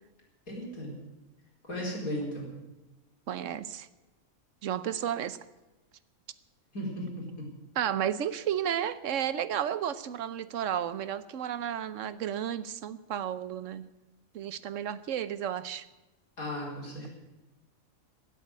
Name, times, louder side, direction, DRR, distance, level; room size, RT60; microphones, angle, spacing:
voice 1, 0.5-1.0 1.6-2.6 6.7-7.5 16.4-17.1, equal, 80° left, -2 dB, 4.9 m, -36 dB
voice 2, 3.3-3.9 4.6-5.4 7.8-13.9 14.3-15.8, right 10 dB, 65° right, 15 dB, 1.1 m, -32 dB
17.0 x 8.4 x 9.5 m, 1.1 s
omnidirectional pair, 1.5 m